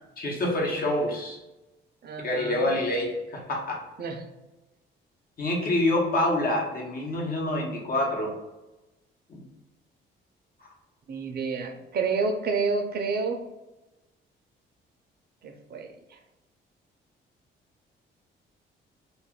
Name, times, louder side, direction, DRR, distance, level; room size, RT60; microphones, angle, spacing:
voice 1, 0.2-1.4 2.2-3.8 5.4-8.3 9.3-9.5 10.6-10.7, left 1 dB, 50° left, -1 dB, 1.0 m, -27 dB
voice 2, 2.0-2.7 4.0-4.2 11.1-13.4 15.4-15.9, right 4 dB, 55° right, 5 dB, 0.6 m, -29 dB
2.5 x 2.4 x 3.6 m, 1.0 s
cardioid pair, 90°, 20 cm